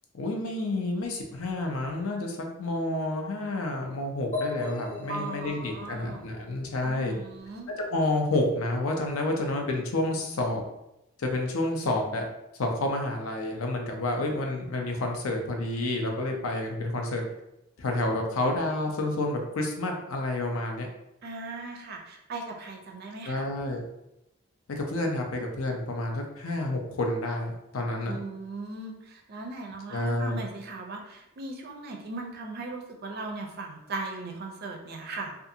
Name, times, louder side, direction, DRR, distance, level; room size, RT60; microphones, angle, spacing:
voice 1, 0.1-7.1 7.8-10.6 11.2-12.2 12.6-17.2 17.8-20.9 23.2-23.8 24.7-28.2 29.9-30.4, left 2 dB, 70° left, 2 dB, 0.5 m, -29 dB
sound 1, 4.3-8.0, left 3 dB, 35° left, 0.8 m, -38 dB
voice 2, 5.1-6.2 6.8-7.7 21.2-23.5 28.0-35.4, right 3 dB, 45° right, 2 dB, 0.4 m, -38 dB
2.5 x 2.4 x 2.7 m, 0.87 s
head